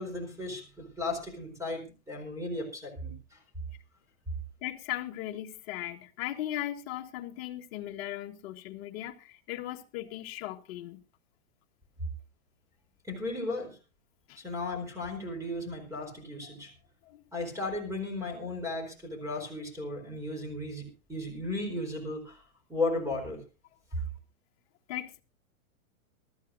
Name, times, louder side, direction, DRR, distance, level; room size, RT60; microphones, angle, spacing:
voice 1, 0.0-3.4 13.1-13.8 14.4-16.7 17.3-22.4 22.7-23.4, left 2 dB, 5° right, 4.3 m, -35 dB
voice 2, 4.6-11.0 14.3-14.4 17.1-17.2 24.9-25.2, left 14 dB, 45° left, 1.5 m, -38 dB
23.0 x 13.5 x 2.6 m
hypercardioid pair, 150°, 42 cm